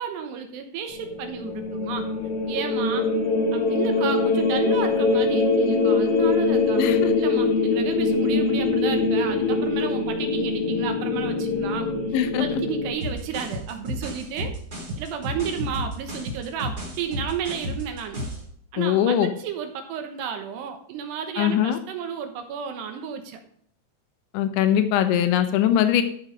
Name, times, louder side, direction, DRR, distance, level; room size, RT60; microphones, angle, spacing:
voice 1, 0.0-2.1 2.5-3.1 3.5-6.9 7.2-11.9 12.4-14.5 15.0-18.2 18.7-23.4, right 7 dB, 70° right, 6 dB, 2.9 m, -32 dB
sound 1, 1.0-12.9, left 3 dB, 60° left, 1.5 m, -23 dB
voice 2, 6.8-7.1 12.1-12.6 18.8-19.3 21.4-21.8 24.3-26.0, left 10 dB, 80° left, 8 dB, 3.3 m, -21 dB
sound 2, 13.0-18.5, equal, 25° right, 2.8 m, -32 dB
13.5 x 6.4 x 5.2 m, 0.65 s
omnidirectional pair, 5.5 m